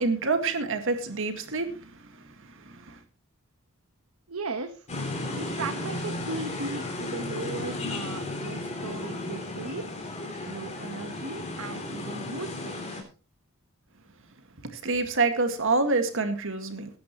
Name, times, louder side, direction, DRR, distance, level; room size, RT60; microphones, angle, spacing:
voice 1, 0.0-1.9 2.7-3.0 14.7-16.9, right 3 dB, 65° right, 7 dB, 2.0 m, -27 dB
voice 2, 4.3-4.9 5.3-9.9 10.4-13.1, right 3 dB, 80° right, 6 dB, 1.2 m, -37 dB
sound 1, 4.9-13.0, left 2 dB, 30° left, 3.4 m, -34 dB
18.5 x 10.5 x 3.1 m, 0.34 s
head